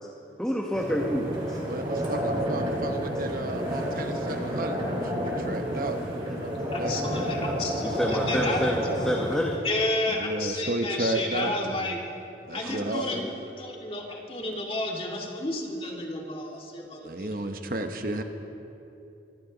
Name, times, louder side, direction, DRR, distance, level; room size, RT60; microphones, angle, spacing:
voice 1, 0.4-1.6 7.8-9.5 11.4-11.6 12.6-13.3, equal, 5° left, -1 dB, 0.9 m, -29 dB
sound 1, 0.7-9.6, equal, 30° right, 3.5 m, -30 dB
voice 2, 1.7-4.8 5.1-6.0 6.4-7.0 10.2-11.9 12.5-13.1 17.0-18.2, right 2 dB, 50° right, 6 dB, 1.0 m, -32 dB
voice 3, 6.7-8.9 9.6-12.0 12.5-13.2 13.6-17.3, left 2 dB, 30° left, -1 dB, 2.0 m, -32 dB
25.0 x 15.0 x 4.0 m, 2.8 s
head